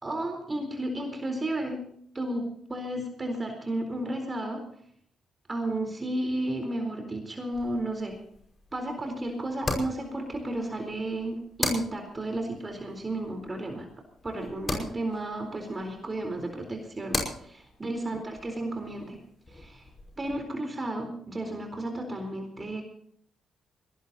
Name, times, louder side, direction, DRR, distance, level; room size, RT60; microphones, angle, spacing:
voice 1, 0.0-1.8 2.1-4.6 5.5-8.2 8.7-13.9 14.2-19.2 19.5-19.9 20.2-22.8, right 1 dB, 30° right, 4 dB, 4.1 m, -33 dB
sound 1, 7.5-20.4, left 2 dB, 35° left, 5.4 m, -39 dB
21.5 x 19.0 x 2.9 m, 0.63 s
figure-of-eight pair, 40°, 0 cm